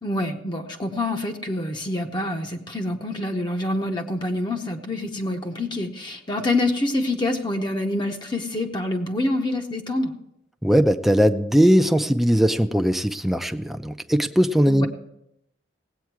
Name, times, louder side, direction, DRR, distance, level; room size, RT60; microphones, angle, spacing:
voice 1, 0.0-10.1 14.7-14.9, left 1 dB, 25° left, 3 dB, 0.8 m, -26 dB
voice 2, 10.6-14.9, equal, ahead, 7 dB, 0.5 m, -19 dB
17.5 x 8.4 x 4.7 m, 0.81 s
head